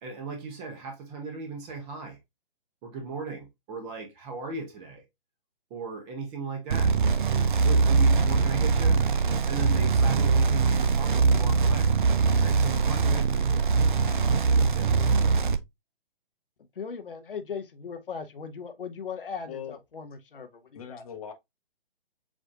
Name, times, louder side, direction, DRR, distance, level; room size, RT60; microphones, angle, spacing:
voice 1, 0.0-2.2 2.8-5.0 5.7-7.2 7.6-9.0 9.5-11.9 12.4-13.7 14.3-14.9, right 4 dB, 20° right, 0.9 m, -37 dB
sound 1, 6.7-15.6, right 4 dB, 55° right, 0.5 m, -22 dB
voice 2, 16.8-21.0, left 6 dB, 65° left, 0.8 m, -38 dB
voice 3, 19.5-19.8 20.8-21.3, left 8 dB, 40° left, 0.9 m, -40 dB
7.1 x 2.6 x 2.3 m
figure-of-eight pair, 130°, 29 cm